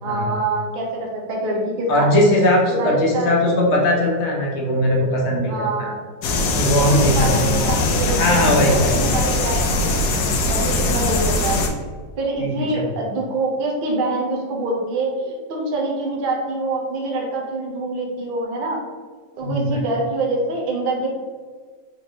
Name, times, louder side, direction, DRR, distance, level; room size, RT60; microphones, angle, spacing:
voice 1, 0.0-2.1 2.7-3.4 5.5-6.0 6.8-10.0 10.5-11.6 12.2-18.9 19.4-21.1, right 2 dB, 50° right, -1 dB, 0.6 m, -25 dB
voice 2, 1.9-5.5 5.8-5.9 6.5-7.4 8.1-9.0 12.4-12.9 19.4-19.8, left 1 dB, 50° left, -1 dB, 1.0 m, -19 dB
sound 1, 6.2-11.7, left 2 dB, 70° left, 1.1 m, -21 dB
4.1 x 3.2 x 2.8 m, 1.5 s
omnidirectional pair, 1.9 m